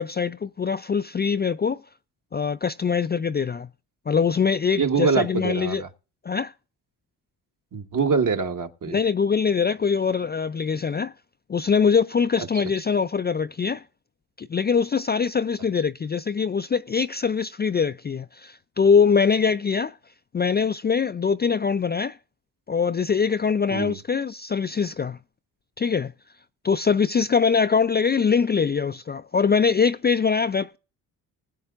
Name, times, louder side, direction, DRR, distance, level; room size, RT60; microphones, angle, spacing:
voice 1, 0.0-1.8 2.3-3.7 4.1-5.8 6.2-6.5 8.9-11.1 11.5-13.8 14.4-19.9 20.3-22.2 22.7-25.2 25.8-26.1 26.6-30.8, left 6 dB, 25° left, 0.4 m, -23 dB
voice 2, 4.8-5.9 7.7-9.0 23.7-24.0, right 5 dB, 50° right, 1.3 m, -24 dB
19.5 x 7.7 x 2.4 m
supercardioid pair, 60°, 41 cm